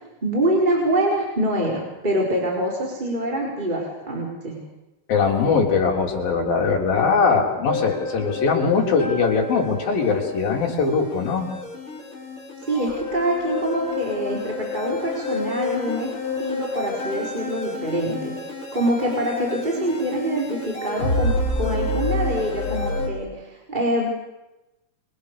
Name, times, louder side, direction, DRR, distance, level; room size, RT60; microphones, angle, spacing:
voice 1, 0.2-4.6 12.7-18.3 18.7-24.1, right 1 dB, 10° right, -2 dB, 4.7 m, -25 dB
voice 2, 5.1-11.5, left 5 dB, 75° left, 1 dB, 5.5 m, -21 dB
sound 1, 7.7-23.1, left 2 dB, 35° left, 7.3 m, -29 dB
29.5 x 23.0 x 6.8 m, 0.98 s
omnidirectional pair, 4.2 m